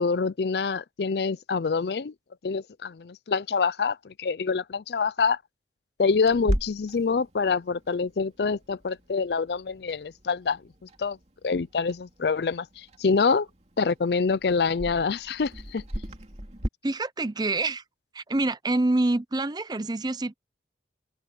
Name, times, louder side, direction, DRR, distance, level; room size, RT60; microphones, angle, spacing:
voice 1, 0.0-2.1 2.4-5.4 6.0-11.2 11.4-13.5 13.8-15.8, left 5 dB, 65° left, 0.5 m, -26 dB
Clock, 6.3-16.7, equal, 40° right, 2.8 m, -37 dB
voice 2, 16.8-17.8 18.1-20.3, right 2 dB, 25° right, 0.6 m, -26 dB
head